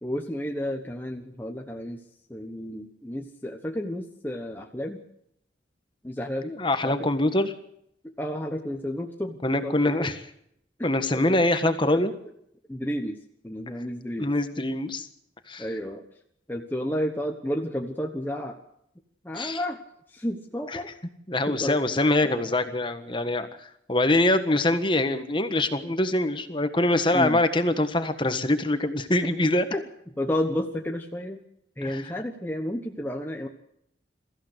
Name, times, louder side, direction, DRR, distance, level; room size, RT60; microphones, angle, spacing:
voice 1, 0.0-2.0 2.3-5.0 6.0-6.5 6.8-6.9 8.2-10.1 10.8-11.4 11.8-12.0 12.7-13.2 13.4-14.3 15.6-16.0 16.5-18.6 19.2-19.8 20.1-20.9 21.5-21.8 27.1-27.4 29.7-29.8 30.2-31.4 31.8-33.5, equal, 10° left, 2 dB, 1.2 m, -31 dB
voice 2, 6.4-7.5 9.4-10.2 10.8-12.1 14.2-15.1 15.5-15.7 19.3-19.6 20.7-20.8 21.3-29.7 31.8-32.1, left 1 dB, 25° left, 9 dB, 1.5 m, -24 dB
23.5 x 15.0 x 8.1 m, 0.75 s
head